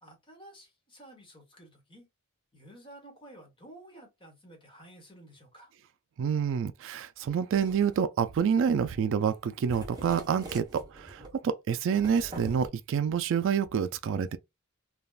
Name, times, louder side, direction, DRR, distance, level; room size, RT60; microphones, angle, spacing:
voice 1, 0.0-2.1 2.5-5.7, right 1 dB, 25° left, 1.3 m, -52 dB
voice 2, 6.2-14.4, right 7 dB, 60° right, 0.3 m, -28 dB
sound 1, 7.5-8.0 8.6-9.0 9.3-9.4 9.7-11.3 11.9-12.7, right 1 dB, 20° right, 1.1 m, -44 dB
3.4 x 2.3 x 2.4 m
head